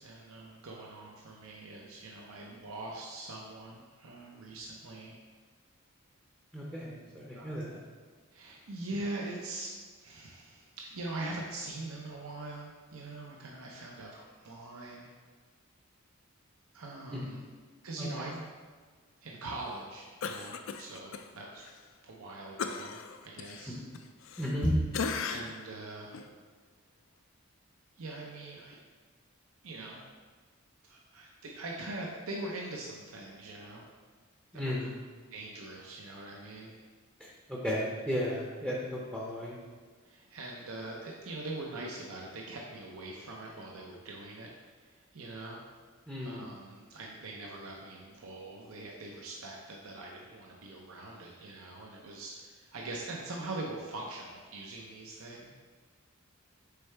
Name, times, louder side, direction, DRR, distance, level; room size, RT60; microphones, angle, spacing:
voice 1, 0.0-5.2 7.3-7.5 8.3-9.7 10.0-15.1 16.7-17.4 17.8-18.3 19.2-21.7 22.0-23.8 25.3-26.2 28.0-28.8 29.6-30.0 30.8-33.8 34.5-34.9 35.3-36.8 40.0-44.5 44.8-45.6 46.2-55.5, right 2 dB, 75° right, -1 dB, 0.7 m, -42 dB
voice 2, 6.5-7.8 17.1-17.3 18.0-18.1 24.4-24.8 34.5-34.9 37.2-39.6 46.1-46.5, equal, 5° right, -4 dB, 0.6 m, -33 dB
Cough, 20.2-21.2 21.6-21.8 22.6-24.6 24.9-25.6 26.1-26.3, left 5 dB, 60° left, 0.4 m, -37 dB
6.8 x 4.4 x 3.3 m, 1.5 s
head